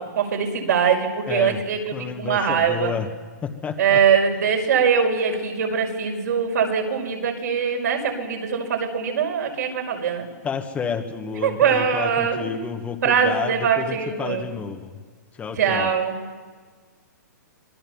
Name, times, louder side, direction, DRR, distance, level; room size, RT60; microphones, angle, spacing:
voice 1, 0.0-2.9 3.8-10.3 11.4-12.4 13.0-14.5 15.6-16.2, right 7 dB, 65° right, 1 dB, 5.7 m, -22 dB
voice 2, 1.3-1.6 1.9-3.1 3.4-4.0 10.4-15.0 15.3-16.0, left 6 dB, 15° left, 4 dB, 1.5 m, -30 dB
26.0 x 21.5 x 7.2 m, 1.5 s
hypercardioid pair, 150°, 10 cm